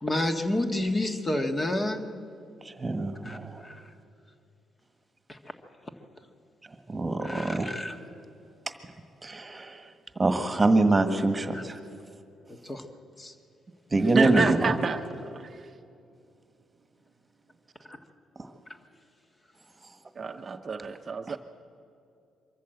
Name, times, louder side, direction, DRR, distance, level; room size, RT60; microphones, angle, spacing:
voice 1, 0.0-2.1 3.2-3.9 5.3-5.4 7.2-8.0 11.5-11.6 12.5-12.9 13.2-13.3 14.2-14.5 18.7-18.8, left 1 dB, 25° left, 6 dB, 1.7 m, -30 dB
voice 2, 2.7-3.6 6.9-7.7 9.2-9.8 10.2-11.8 13.9-14.7 21.3-21.4, right 2 dB, 20° right, 8 dB, 1.6 m, -25 dB
voice 3, 14.1-15.6 20.2-21.4, right 5 dB, 40° right, 7 dB, 0.7 m, -29 dB
23.5 x 14.0 x 8.0 m, 2.6 s
cardioid pair, 90°, 0 cm